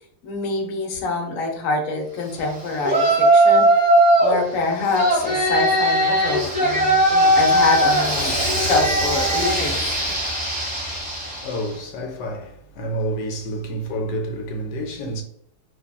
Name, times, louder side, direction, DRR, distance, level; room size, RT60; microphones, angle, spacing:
voice 1, 0.2-3.9 4.2-9.8, left 3 dB, 65° left, 0.9 m, -25 dB
Yell, 2.8-4.4 4.9-11.7, right 1 dB, 5° right, 0.7 m, -18 dB
voice 2, 11.1-15.2, right 1 dB, 85° left, 1.2 m, -29 dB
2.8 x 2.6 x 2.2 m
omnidirectional pair, 1.7 m